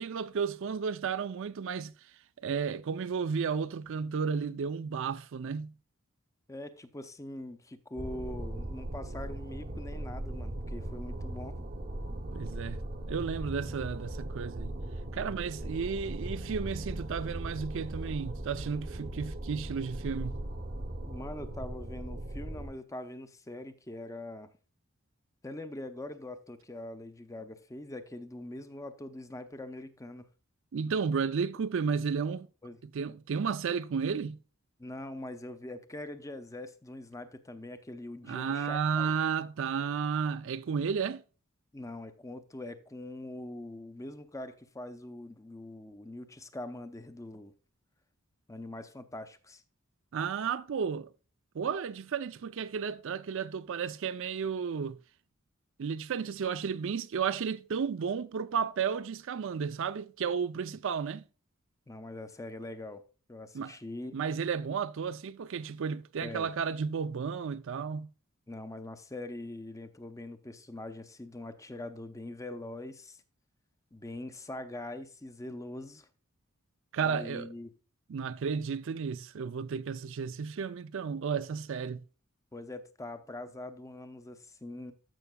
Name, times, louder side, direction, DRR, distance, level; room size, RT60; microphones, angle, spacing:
voice 1, 0.0-1.9 2.4-5.7 12.3-12.8 13.1-14.8 15.1-20.4 30.7-32.5 32.9-34.4 38.2-41.2 50.1-51.1 51.5-55.0 55.8-61.2 63.5-63.8 64.1-68.1 76.9-77.5 78.1-82.0, right 6 dB, 65° right, 0.4 m, -33 dB
voice 2, 6.5-11.6 15.6-15.7 21.1-24.5 25.4-30.3 32.6-32.8 34.8-39.1 41.7-47.5 48.5-49.6 61.9-63.0 63.3-64.2 66.2-66.5 68.5-73.2 73.9-76.1 77.0-77.7 82.5-84.9, left 1 dB, 15° left, 0.7 m, -43 dB
sound 1, 8.0-22.7, right 1 dB, 45° right, 0.8 m, -39 dB
14.0 x 5.7 x 2.2 m
head